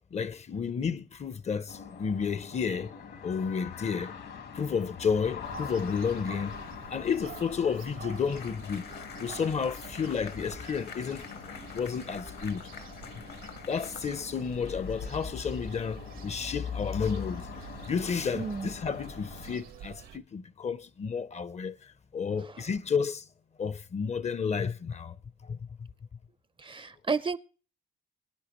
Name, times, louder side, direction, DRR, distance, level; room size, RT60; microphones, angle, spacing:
voice 1, 0.1-4.2 4.5-6.6 6.9-8.9 9.2-12.7 13.4-17.5 17.8-23.3 23.6-25.2 25.4-25.6, left 6 dB, 35° left, 0.6 m, -31 dB
sound 1, 1.7-19.6, left 6 dB, 80° left, 2.2 m, -45 dB
sound 2, 5.4-20.2, right 10 dB, 85° right, 1.2 m, -48 dB
sound 3, 8.0-14.7, left 7 dB, 55° left, 0.9 m, -47 dB
voice 2, 18.3-18.7 26.6-27.4, right 5 dB, 25° right, 0.5 m, -31 dB
23.0 x 9.6 x 3.0 m
cardioid pair, 90°, 20 cm